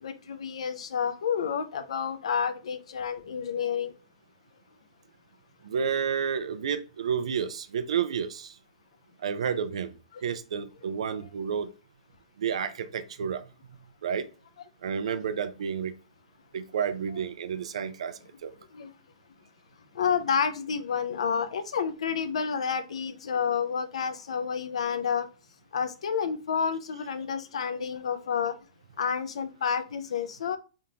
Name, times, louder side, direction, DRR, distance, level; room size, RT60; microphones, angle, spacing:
voice 1, 0.0-3.9 18.7-18.9 20.0-25.3 25.7-28.6 29.0-30.6, left 7 dB, 75° left, 11 dB, 0.6 m, -29 dB
voice 2, 5.6-8.5 9.2-9.9 10.2-11.7 12.4-13.4 14.0-14.3 14.8-15.9 16.5-18.5, right 7 dB, 75° right, 11 dB, 0.5 m, -30 dB
3.8 x 3.6 x 2.8 m, 0.33 s
hypercardioid pair, 125°, 3 cm